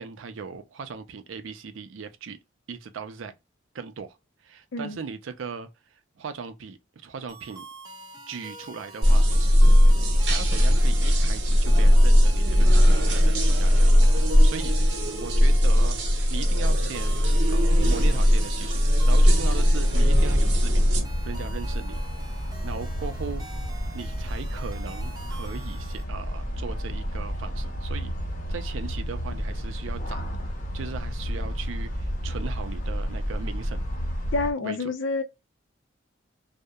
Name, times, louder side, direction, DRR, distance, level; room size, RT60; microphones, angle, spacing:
voice 1, 0.0-2.4 2.7-3.3 3.7-4.2 4.4-5.7 6.2-7.6 8.3-9.3 10.3-14.1 14.4-16.0 16.3-17.2 17.5-22.0 22.6-23.4 23.9-28.1 28.5-30.3 30.7-33.8 34.6-34.8, right 5 dB, 90° right, 0.5 m, -38 dB
sound 1, 7.3-26.0, right 2 dB, 20° right, 0.4 m, -46 dB
sound 2, 9.0-21.0, equal, 60° right, 0.8 m, -19 dB
sound 3, 19.2-34.5, equal, 40° left, 0.7 m, -31 dB
voice 2, 34.3-35.2, left 3 dB, 80° left, 0.5 m, -28 dB
2.7 x 2.0 x 2.2 m
head